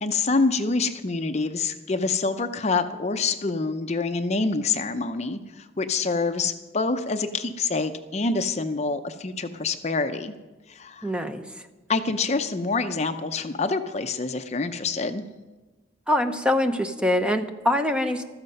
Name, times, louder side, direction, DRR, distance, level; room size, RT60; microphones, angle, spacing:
voice 1, 0.0-10.3 10.7-11.1 11.9-15.2, left 3 dB, 35° left, 8 dB, 0.6 m, -26 dB
voice 2, 11.0-11.4 16.1-18.2, left 1 dB, 5° right, 7 dB, 0.8 m, -24 dB
15.0 x 13.0 x 5.4 m, 1.2 s
head